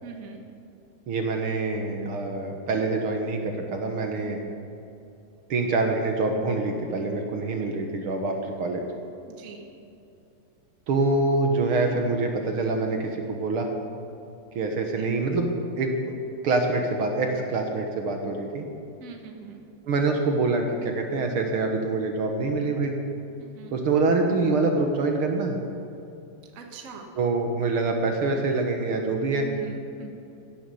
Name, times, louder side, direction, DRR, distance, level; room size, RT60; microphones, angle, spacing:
voice 1, 0.0-0.4 9.3-9.7 15.0-15.1 19.0-19.6 23.4-23.8 26.5-27.1 29.4-30.1, right 5 dB, 85° right, 3 dB, 0.7 m, -42 dB
voice 2, 1.1-4.4 5.5-8.8 10.9-13.7 14.5-16.2 16.4-18.6 19.8-23.0 23.7-25.6 27.2-29.5, right 3 dB, 65° right, 3 dB, 1.4 m, -25 dB
16.5 x 9.5 x 7.1 m, 2.8 s
omnidirectional pair, 4.0 m